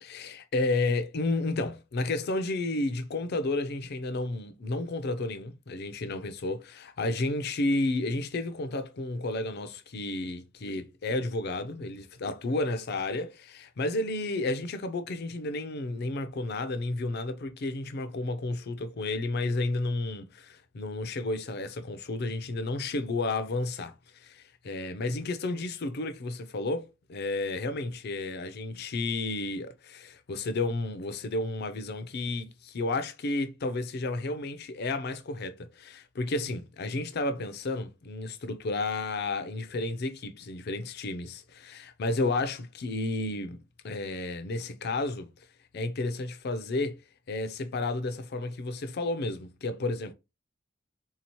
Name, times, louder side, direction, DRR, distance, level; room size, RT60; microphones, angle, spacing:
voice 1, 0.0-43.6 43.8-45.3 45.7-47.0 47.3-50.1, left 2 dB, 55° left, 0.5 m, -32 dB
3.7 x 2.8 x 2.9 m
head